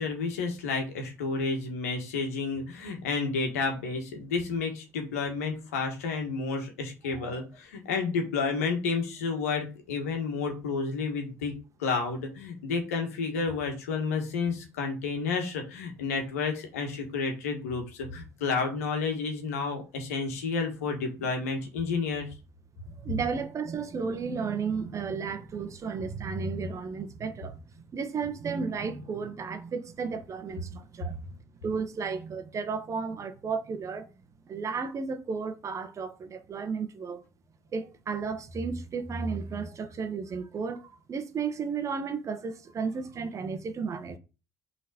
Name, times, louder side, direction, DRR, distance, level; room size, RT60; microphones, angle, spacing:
voice 1, 0.0-22.2, left 4 dB, 80° left, 1.7 m, -31 dB
voice 2, 22.9-31.4 31.6-34.1 34.5-37.2 37.7-44.2, right 5 dB, 40° right, 1.2 m, -33 dB
5.7 x 4.0 x 5.0 m
hypercardioid pair, 55°, 8 cm